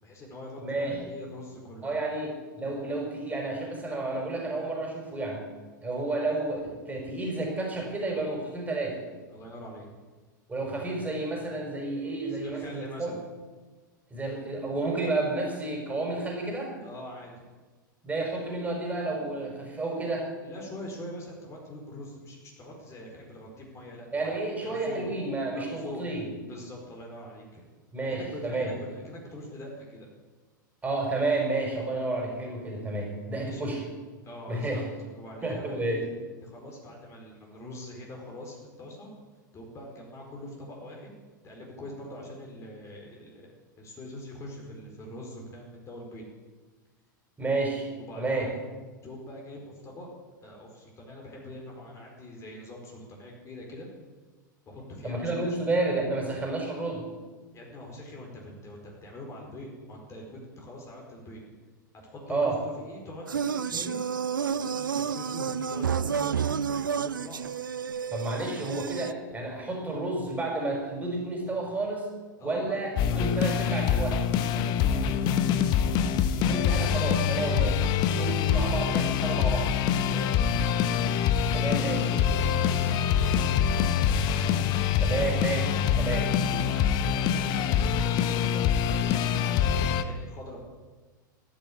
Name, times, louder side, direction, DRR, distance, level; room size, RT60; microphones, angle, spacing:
voice 1, 0.0-2.0 9.3-9.9 12.3-13.2 16.8-17.4 20.4-25.1 25.5-26.0 26.5-27.6 28.1-30.1 33.4-33.7 34.2-36.1 36.4-39.1 39.5-41.1 41.4-43.5 43.8-46.2 48.1-48.5 49.0-50.1 50.4-53.9 54.7-55.6 57.5-61.4 62.0-64.0 64.4-67.4 72.4-72.8 73.1-73.9 74.4-75.3 77.4-77.7 78.0-78.3 79.9-80.9 81.2-83.7 86.1-90.7, left 1 dB, 25° left, 0 dB, 4.6 m, -43 dB
voice 2, 0.6-1.0 1.8-5.4 5.8-9.0 10.5-13.1 14.1-16.8 18.0-20.3 24.1-26.3 27.9-28.7 30.8-33.8 34.5-34.8 35.4-36.0 47.4-47.9 48.2-48.5 55.0-57.1 62.3-62.6 63.7-63.9 68.1-72.1 72.4-74.2 76.4-77.8 78.1-79.7 81.5-82.0 85.0-86.3, right 2 dB, 15° right, 0 dB, 4.9 m, -31 dB
sound 1, 63.3-69.1, right 7 dB, 80° right, 0.5 m, -30 dB
sound 2, 73.0-90.0, left 8 dB, 40° left, 1.0 m, -25 dB
14.0 x 10.5 x 8.6 m, 1.3 s
figure-of-eight pair, 90°, 11 cm